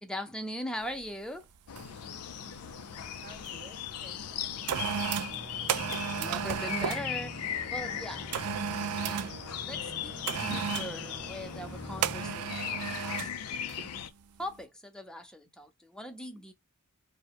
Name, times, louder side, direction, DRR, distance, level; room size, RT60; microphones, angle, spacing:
voice 1, 0.0-1.5 6.2-8.3 8.9-9.2 9.6-13.9 14.4-16.5, equal, 5° left, 0.5 m, -41 dB
sound 1, 0.9-1.1 1.8-2.0 2.3-3.5 4.2-7.1 8.3-9.4 10.3-11.0 12.0-13.4 13.7-13.9, right 8 dB, 85° right, 0.4 m, -33 dB
sound 2, 1.7-14.1, left 9 dB, 85° left, 0.5 m, -38 dB
voice 2, 3.2-5.2 7.6-8.0, right 1 dB, 35° right, 1.8 m, -54 dB
sound 3, 5.3-12.4, right 1 dB, 60° right, 1.8 m, -45 dB
4.8 x 2.2 x 2.8 m
head